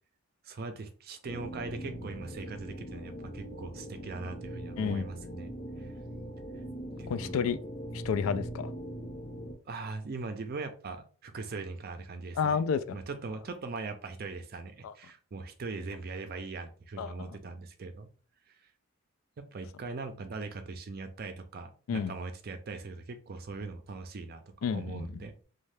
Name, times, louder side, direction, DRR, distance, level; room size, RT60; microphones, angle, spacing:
voice 1, 0.4-5.9 7.0-7.4 9.6-12.6 12.9-18.1 18.5-18.6 19.4-25.3, right 3 dB, 45° right, 0.4 m, -40 dB
sound 1, 1.2-9.5, equal, 45° left, 0.7 m, -41 dB
voice 2, 7.1-7.6 7.9-8.7 12.4-13.0 14.8-14.9 17.0-17.3 21.9-22.1 24.6-25.3, left 6 dB, 80° left, 0.3 m, -31 dB
2.7 x 2.2 x 3.2 m
head